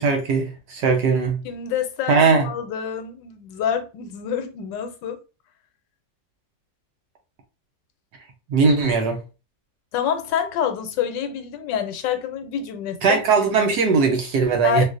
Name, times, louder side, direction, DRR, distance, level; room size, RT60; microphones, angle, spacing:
voice 1, 0.0-1.4 2.1-2.5 8.5-9.2 13.0-14.8, right 5 dB, 70° right, 1.2 m, -19 dB
voice 2, 1.4-5.2 9.9-13.2 14.6-14.8, left 8 dB, 80° left, 1.3 m, -27 dB
3.9 x 2.4 x 2.5 m
omnidirectional pair, 2.0 m